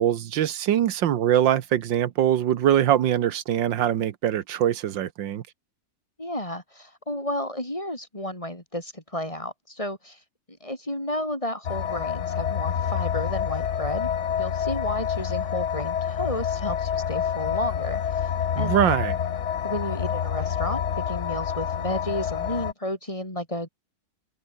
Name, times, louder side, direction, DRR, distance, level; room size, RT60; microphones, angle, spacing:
voice 1, 0.0-5.4 18.6-19.2, right 11 dB, 85° right, 1.7 m, -23 dB
voice 2, 6.2-10.2 10.6-14.1 14.4-18.0 18.6-18.9 19.6-23.7, left 1 dB, 15° left, 5.1 m, -32 dB
sound 1, 11.6-22.7, left 8 dB, 45° left, 1.1 m, -27 dB
omnidirectional pair, 2.0 m